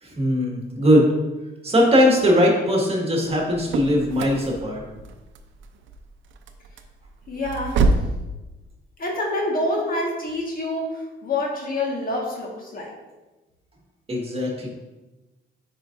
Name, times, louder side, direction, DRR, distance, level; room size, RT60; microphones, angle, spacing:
voice 1, 0.0-1.1 1.6-4.8 14.1-14.7, equal, 30° right, -1 dB, 1.7 m, -20 dB
sound 1, 3.4-8.2, right 3 dB, 75° right, 0.6 m, -27 dB
voice 2, 7.3-7.9 9.0-12.9, left 1 dB, 45° left, -2 dB, 1.6 m, -27 dB
8.4 x 4.7 x 2.5 m, 1.1 s
cardioid pair, 90°, 20 cm